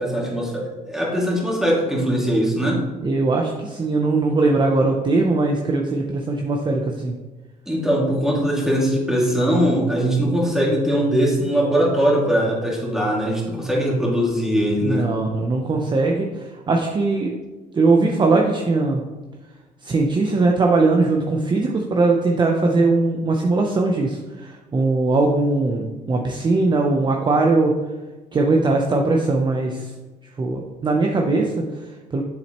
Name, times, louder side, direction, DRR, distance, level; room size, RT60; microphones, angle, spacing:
voice 1, 0.0-2.8 7.7-15.1, equal, 5° right, -4 dB, 2.3 m, -21 dB
voice 2, 3.0-7.1 14.8-17.3 17.7-19.0 19.8-27.7 28.3-29.9 30.4-32.2, right 3 dB, 25° right, 1 dB, 0.7 m, -20 dB
7.5 x 7.2 x 3.0 m, 1.2 s
cardioid pair, 110°, 17 cm